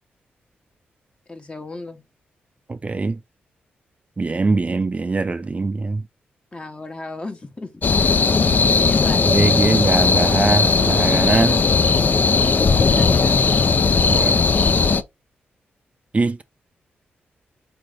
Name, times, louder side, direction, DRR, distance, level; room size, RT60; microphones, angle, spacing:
voice 1, 1.3-2.0 6.5-7.8 8.7-9.7 12.9-13.5, left 2 dB, 25° left, 1.1 m, -35 dB
voice 2, 2.7-3.2 4.2-6.0 9.3-11.6 14.1-14.4 16.1-16.4, right 3 dB, 35° right, 0.4 m, -21 dB
sound 1, 7.8-15.0, left 5 dB, 45° left, 0.5 m, -17 dB
4.1 x 3.0 x 3.7 m
supercardioid pair, 50°, 4 cm